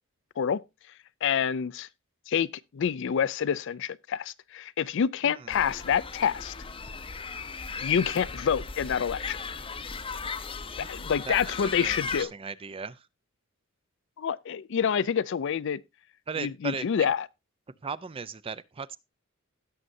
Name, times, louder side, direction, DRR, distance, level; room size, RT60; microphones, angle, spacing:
voice 1, 1.2-1.9 2.3-2.5 2.7-6.5 7.8-9.4 10.9-12.3 14.2-15.8 16.4-17.2, left 7 dB, 60° left, 0.4 m, -27 dB
voice 2, 5.2-5.6 10.8-10.9 11.2-13.1 16.3-17.1 17.8-19.0, right 5 dB, 25° right, 0.5 m, -37 dB
sound 1, 5.5-12.2, left 4 dB, 25° left, 0.7 m, -37 dB
17.0 x 6.5 x 2.6 m
head